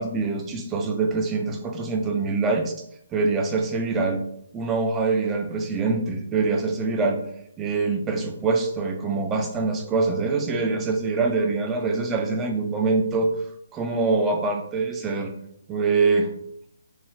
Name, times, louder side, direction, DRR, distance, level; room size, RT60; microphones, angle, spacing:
voice 1, 0.0-2.7 3.1-4.2 4.5-7.2 7.6-13.3 13.7-15.3 15.7-16.3, right 4 dB, 15° right, 3 dB, 0.4 m, -24 dB
3.1 x 2.2 x 2.8 m, 0.72 s
figure-of-eight pair, 140°, 0 cm